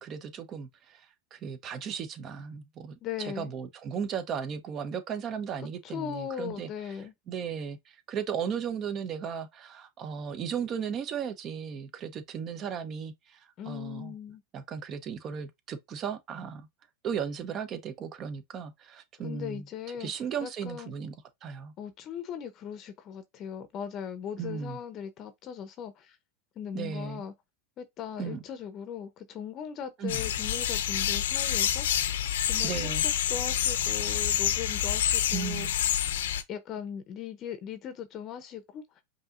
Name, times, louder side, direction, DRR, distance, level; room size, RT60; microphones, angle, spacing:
voice 1, 0.0-14.1 14.5-16.7 17.0-19.7 20.0-21.1 21.4-21.7 24.4-24.8 26.7-27.2 28.2-28.4 30.0-30.2 32.6-33.1 35.3-35.8, right 7 dB, 35° right, 0.8 m, -36 dB
voice 2, 3.0-3.5 5.8-7.1 13.6-14.4 19.2-20.1 20.4-20.9 21.8-26.2 26.6-27.3 27.8-32.1 32.5-33.0 33.3-35.9 36.5-39.0, left 8 dB, 40° left, 0.7 m, -39 dB
sound 1, 30.1-36.4, left 10 dB, 80° left, 0.6 m, -28 dB
5.4 x 2.8 x 2.5 m
hypercardioid pair, 115°, 0 cm